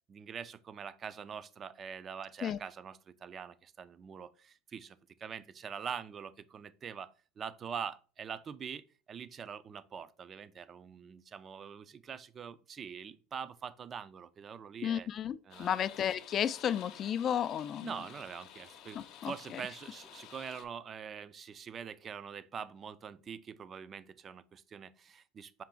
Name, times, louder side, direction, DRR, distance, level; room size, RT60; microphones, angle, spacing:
voice 1, 0.1-15.1 15.5-15.8 17.8-25.6, right 7 dB, 35° right, 0.4 m, -44 dB
voice 2, 14.8-17.9 18.9-19.6, left 9 dB, 40° left, 0.3 m, -33 dB
sound 1, 15.5-20.7, left 9 dB, 60° left, 0.7 m, -52 dB
5.8 x 2.5 x 3.7 m
supercardioid pair, 105°, 0 cm